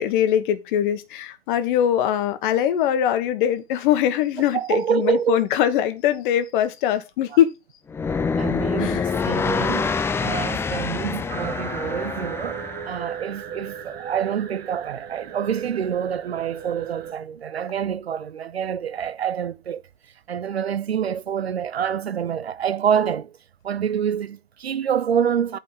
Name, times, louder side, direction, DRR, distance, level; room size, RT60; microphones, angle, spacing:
voice 1, 0.0-7.5 8.8-9.1, left 10 dB, 55° left, 1.4 m, -22 dB
voice 2, 4.5-5.4 8.4-9.9 10.2-19.8 20.3-23.4 23.6-25.6, right 8 dB, 90° right, 0.7 m, -26 dB
sound 1, 7.9-13.0, left 5 dB, 10° left, 0.4 m, -26 dB
sound 2, 11.3-17.1, right 8 dB, 30° right, 1.4 m, -37 dB
8.6 x 4.1 x 5.7 m
hypercardioid pair, 105°, 30 cm